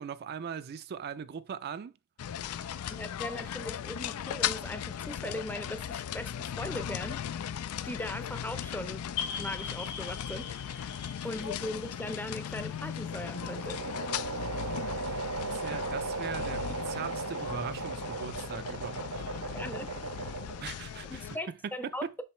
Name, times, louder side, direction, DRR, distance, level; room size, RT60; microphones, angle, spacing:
voice 1, 0.0-1.9 2.6-3.0 15.1-19.1 19.5-19.6 20.6-21.4 21.6-22.1, right 7 dB, 50° right, 0.4 m, -40 dB
sound 1, 2.2-21.4, left 9 dB, 90° left, 0.4 m, -38 dB
voice 2, 2.9-7.3 7.8-9.0 9.4-13.8 19.5-19.9 21.1-22.0, left 1 dB, 10° left, 0.6 m, -39 dB
sound 2, 9.2-13.6, left 6 dB, 55° left, 1.4 m, -41 dB
sound 3, 12.5-20.8, right 3 dB, 80° right, 0.8 m, -37 dB
6.7 x 5.2 x 3.1 m
head